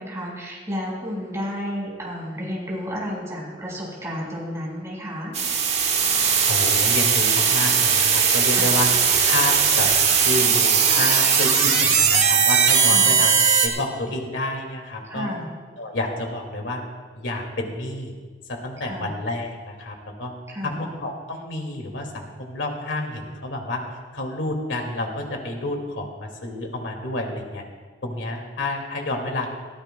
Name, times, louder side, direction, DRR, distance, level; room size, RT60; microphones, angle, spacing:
voice 1, 0.0-5.3 8.5-8.7 12.9-13.1 15.1-15.5 18.8-19.1 20.5-20.9, equal, 15° right, -5 dB, 4.8 m, -32 dB
sound 1, 5.3-13.7, right 6 dB, 35° right, 1.3 m, -19 dB
voice 2, 6.5-8.9 9.2-9.9 10.2-13.3 13.6-15.3 15.8-16.8 17.1-18.2 18.5-20.3 20.6-23.8 24.1-27.6 28.0-29.5, left 2 dB, 80° left, 2 dB, 2.2 m, -29 dB
20.5 x 15.0 x 2.2 m, 1.5 s
head